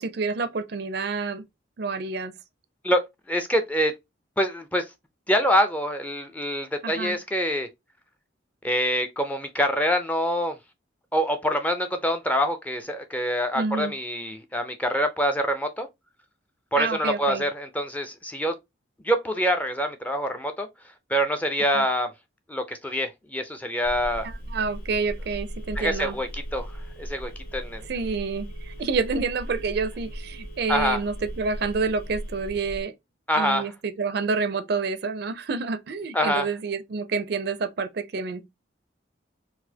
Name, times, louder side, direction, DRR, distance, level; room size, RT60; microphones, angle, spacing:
voice 1, 0.0-1.4 1.8-2.3 6.8-7.2 13.5-13.9 16.8-17.5 21.7-21.8 24.2-26.2 27.9-32.9 33.4-38.4, right 4 dB, 55° right, 0.4 m, -28 dB
voice 2, 3.3-3.9 4.4-4.8 5.3-7.7 8.6-10.6 11.1-15.9 16.7-18.5 19.0-20.7 21.1-22.1 22.5-24.3 25.8-26.7 27.0-27.8 30.7-31.0 33.3-33.7 36.1-36.5, equal, 10° left, 0.4 m, -25 dB
Telephone, 23.8-32.8, equal, 45° left, 1.1 m, -37 dB
4.0 x 2.5 x 2.7 m
head